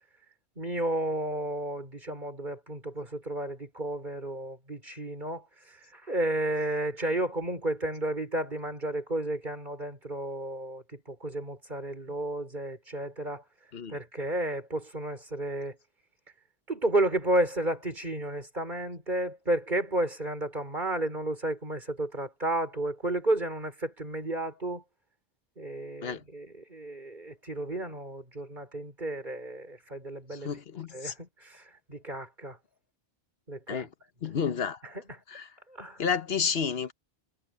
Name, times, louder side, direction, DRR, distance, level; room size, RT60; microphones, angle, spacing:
voice 1, 0.6-13.4 13.9-15.8 16.7-24.8 25.6-30.5 30.9-32.6 33.5-33.9 34.8-35.2 35.7-36.0, right 1 dB, 50° right, 5.5 m, -32 dB
voice 2, 30.4-31.1 33.7-33.9 34.2-34.8 35.3-35.4 36.0-36.9, left 6 dB, 70° left, 1.2 m, -30 dB
omnidirectional pair, 1.1 m